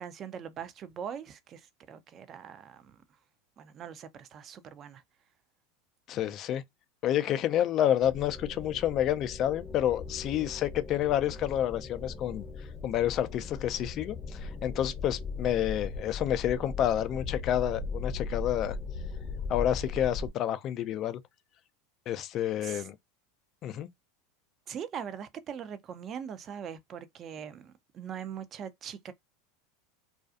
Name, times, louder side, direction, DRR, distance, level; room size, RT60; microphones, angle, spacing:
voice 1, 0.0-3.0 3.6-5.0 22.6-22.9 24.7-29.1, right 8 dB, 40° right, 0.5 m, -41 dB
voice 2, 6.1-6.6 7.0-12.4 12.8-18.8 19.5-21.2 22.1-23.0 23.6-23.9, left 11 dB, 45° left, 0.4 m, -29 dB
sound 1, 8.0-20.3, left 4 dB, 20° left, 0.7 m, -38 dB
2.4 x 2.3 x 2.5 m
hypercardioid pair, 95°, 0 cm